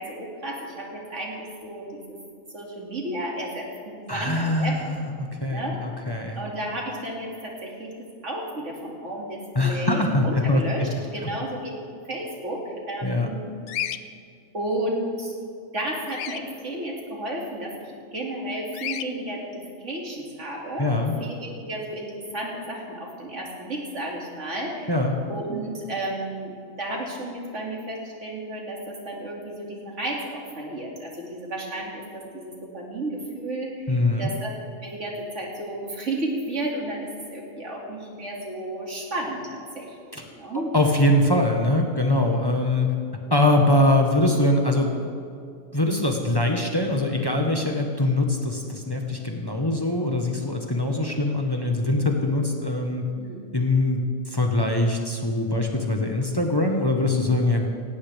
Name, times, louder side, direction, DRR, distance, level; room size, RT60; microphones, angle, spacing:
voice 1, 0.0-2.2 2.5-4.8 5.5-5.8 6.3-7.9 8.2-11.7 12.1-13.5 14.5-15.3 15.7-24.9 25.3-34.5 34.8-40.7 53.1-53.5, right 1 dB, 75° right, -2 dB, 2.9 m, -33 dB
voice 2, 4.1-6.4 9.5-10.9 13.0-13.3 20.8-21.1 24.9-25.2 33.9-34.3 40.1-40.2 40.7-42.9 43.3-45.1 45.7-53.0 53.5-54.0 54.3-57.7, left 1 dB, 20° left, 1 dB, 1.2 m, -23 dB
Bird vocalization bird call bird song, 13.7-14.0 16.1-16.4 18.7-19.1, left 10 dB, 70° left, 0.9 m, -30 dB
18.0 x 17.0 x 3.5 m, 2.4 s
omnidirectional pair, 1.2 m